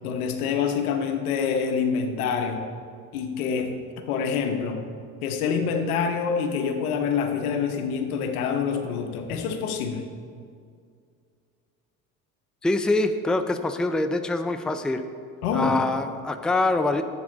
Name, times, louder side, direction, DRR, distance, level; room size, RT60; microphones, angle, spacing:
voice 1, 0.0-2.6 3.1-3.7 4.1-4.8 5.2-10.1 15.4-15.8, left 6 dB, 90° left, 5 dB, 1.0 m, -26 dB
voice 2, 12.6-15.0 15.5-17.0, left 2 dB, ahead, 8 dB, 0.4 m, -24 dB
10.0 x 7.7 x 3.9 m, 2.2 s
hypercardioid pair, 75°, 43 cm